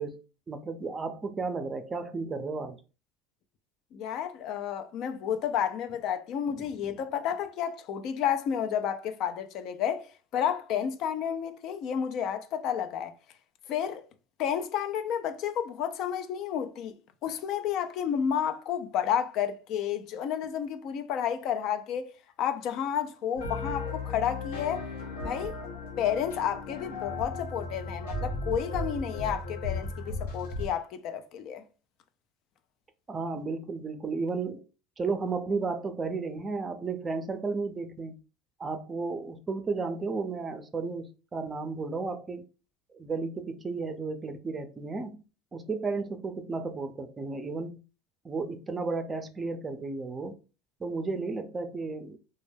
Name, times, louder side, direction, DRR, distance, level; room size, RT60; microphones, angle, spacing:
voice 1, 0.0-2.8 6.6-6.7 33.1-34.6 35.0-38.2 38.6-42.4 42.9-45.2 45.5-47.8 48.2-50.4 50.8-52.2, right 4 dB, 25° right, 0.4 m, -33 dB
voice 2, 3.9-13.1 13.7-14.0 14.4-17.0 17.2-22.1 22.4-24.9 25.2-25.6 26.0-31.6, left 9 dB, 60° left, 0.4 m, -31 dB
sound 1, 23.4-30.7, left 2 dB, 90° left, 0.8 m, -36 dB
2.2 x 2.1 x 3.2 m
hypercardioid pair, 90°, 0 cm